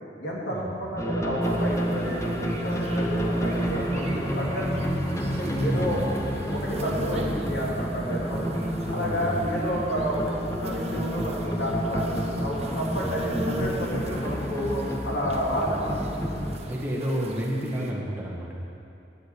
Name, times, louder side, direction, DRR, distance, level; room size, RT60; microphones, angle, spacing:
voice 1, 0.2-4.7 5.3-6.0 6.5-8.5 8.9-12.1 12.4-16.0, equal, 75° left, -5 dB, 3.0 m, -30 dB
sound 1, 1.0-16.6, equal, 15° left, 1.1 m, -29 dB
sound 2, 1.4-17.9, right 1 dB, 35° right, 0.9 m, -39 dB
voice 2, 5.6-6.1 8.8-9.6 16.7-18.6, right 1 dB, 10° right, -4 dB, 1.6 m, -30 dB
10.0 x 7.7 x 9.0 m, 2.6 s
head